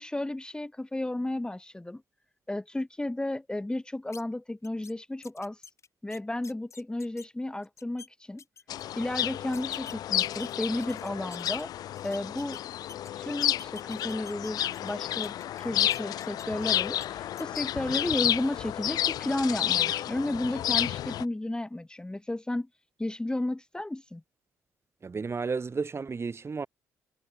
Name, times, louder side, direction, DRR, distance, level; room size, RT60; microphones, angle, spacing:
voice 1, 0.0-2.0 2.5-5.6 6.0-8.4 9.0-11.7 12.0-12.6 13.2-22.7 23.0-24.2, left 1 dB, 10° left, 1.1 m, -33 dB
sound 1, 4.1-4.2 4.6-4.9 5.2-7.3 7.6-8.1 8.4-8.8 9.5-11.6 12.0-13.1 13.4-14.9 15.2-16.6 17.0-17.1 17.4-17.6, left 5 dB, 40° left, 6.4 m, -48 dB
sound 2, 8.7-21.2, left 12 dB, 65° left, 1.7 m, -31 dB
voice 2, 25.0-26.7, right 4 dB, 35° right, 3.9 m, -32 dB
hypercardioid pair, 45°, 7 cm